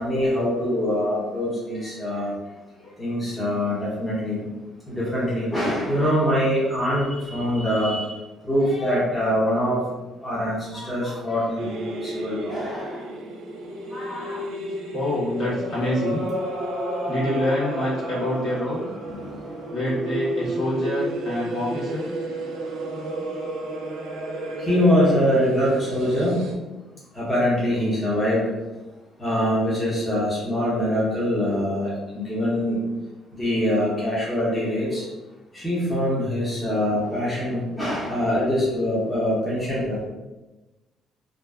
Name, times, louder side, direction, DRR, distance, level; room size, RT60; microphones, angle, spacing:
voice 1, 0.0-2.3 3.0-4.4 4.9-8.1 8.4-9.8 10.2-13.0 19.1-19.5 24.6-26.5 27.1-28.4 29.2-32.8 33.4-35.0 35.5-40.0, equal, 15° left, -8 dB, 0.9 m, -24 dB
voice 2, 8.5-9.0 10.7-11.5 13.9-14.5 14.9-16.2 17.1-18.9 19.7-22.1, left 1 dB, 55° left, -9 dB, 1.3 m, -27 dB
sound 1, 11.6-26.5, right 1 dB, 90° right, 0.4 m, -32 dB
2.5 x 2.2 x 2.3 m, 1.1 s
cardioid pair, 85°, 0 cm